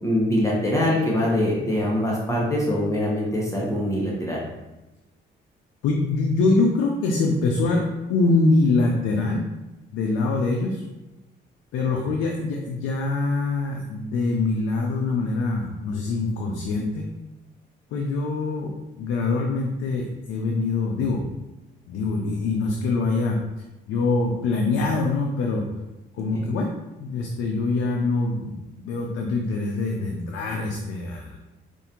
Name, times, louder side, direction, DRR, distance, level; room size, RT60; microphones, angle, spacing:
voice 1, 0.0-4.4, left 1 dB, 15° left, -4 dB, 0.9 m, -23 dB
voice 2, 5.8-9.4 9.9-10.8 11.7-17.1 17.9-21.2 21.9-23.4 23.9-25.7 26.1-26.7 27.0-31.4, left 3 dB, 90° left, 1 dB, 0.5 m, -24 dB
4.8 x 2.5 x 2.8 m, 1.0 s
cardioid pair, 90°, 20 cm